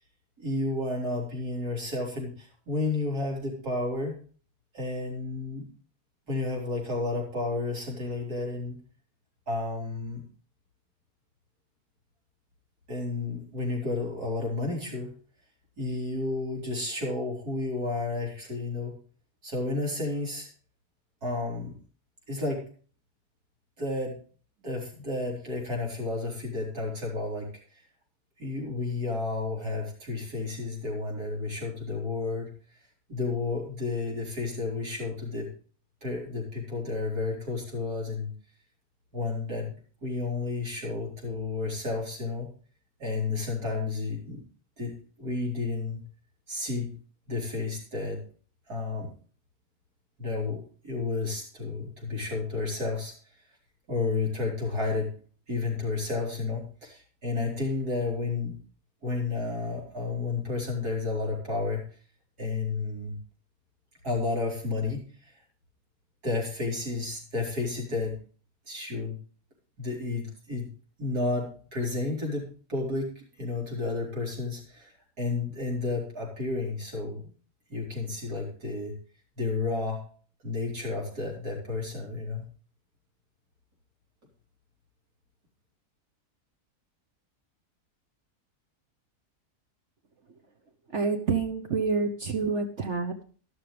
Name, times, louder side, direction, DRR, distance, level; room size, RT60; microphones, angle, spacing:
voice 1, 0.4-4.1 4.7-5.7 6.3-8.8 9.5-10.2 12.9-15.1 15.8-18.9 19.4-20.5 21.2-21.7 22.3-22.6 23.8-24.2 24.6-27.5 28.4-32.5 33.1-35.5 36.0-38.3 39.1-39.7 40.0-42.5 43.0-44.4 44.8-46.0 46.5-46.9 47.3-48.2 48.7-49.1 50.2-53.1 53.9-55.1 55.5-58.6 59.0-61.8 62.4-63.2 64.0-65.3 66.2-68.2 68.7-69.2 69.8-70.7 71.0-77.3 77.7-78.9 79.4-80.1 80.4-82.4, left 3 dB, 75° right, -2 dB, 4.8 m, -31 dB
voice 2, 90.9-93.2, right 4 dB, 50° right, 4 dB, 1.3 m, -28 dB
13.0 x 12.0 x 3.4 m, 0.40 s
omnidirectional pair, 1.6 m